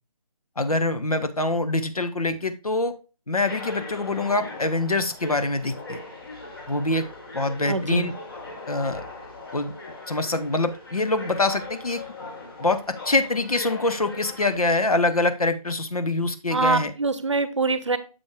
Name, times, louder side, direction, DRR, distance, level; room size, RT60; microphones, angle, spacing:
voice 1, 0.6-3.0 3.3-6.0 6.7-7.1 7.3-8.1 8.7-9.0 9.5-9.7 10.1-12.0 12.6-16.9, left 2 dB, 70° left, 9 dB, 1.1 m, -24 dB
sound 1, 3.5-14.6, left 2 dB, 35° left, 1.9 m, -39 dB
voice 2, 7.7-8.1 16.5-18.0, right 3 dB, 50° right, 13 dB, 0.8 m, -24 dB
7.2 x 5.3 x 3.5 m, 0.32 s
figure-of-eight pair, 155°, 20 cm